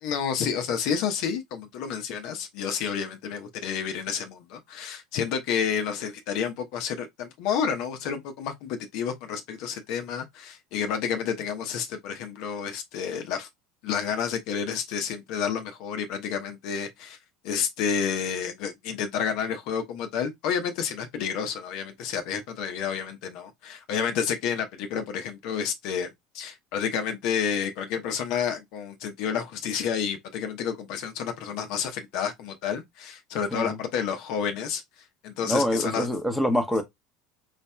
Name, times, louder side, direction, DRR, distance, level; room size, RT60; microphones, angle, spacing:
voice 1, 0.0-13.5 13.8-17.2 17.4-26.1 26.3-36.1, left 7 dB, 60° left, 0.8 m, -30 dB
voice 2, 35.4-36.8, equal, ahead, 1.0 m, -25 dB
4.2 x 3.2 x 2.2 m
figure-of-eight pair, 75°, 0 cm